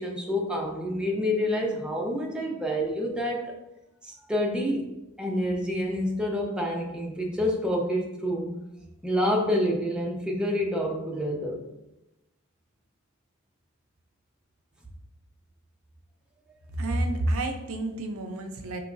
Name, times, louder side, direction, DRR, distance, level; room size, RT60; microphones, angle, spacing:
voice 1, 0.0-3.6 4.0-4.9 5.2-8.5 9.0-11.6, equal, 5° right, -1 dB, 0.6 m, -28 dB
voice 2, 16.7-18.8, right 1 dB, 70° right, 5 dB, 0.5 m, -29 dB
4.7 x 3.0 x 2.5 m, 0.93 s
head